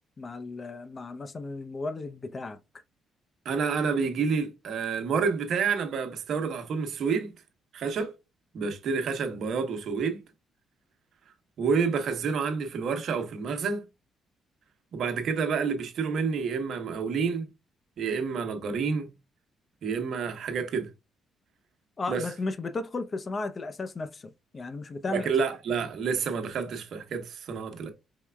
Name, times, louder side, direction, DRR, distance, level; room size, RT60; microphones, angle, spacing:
voice 1, 0.2-2.6 22.0-25.3, left 3 dB, 35° left, 0.6 m, -34 dB
voice 2, 3.4-7.3 7.7-8.1 8.5-10.2 11.6-13.8 14.9-17.5 18.0-19.1 19.8-20.9 22.1-22.2 25.1-27.9, right 5 dB, 65° right, 1.0 m, -29 dB
4.7 x 3.3 x 2.2 m
cardioid pair, 90°, 0 cm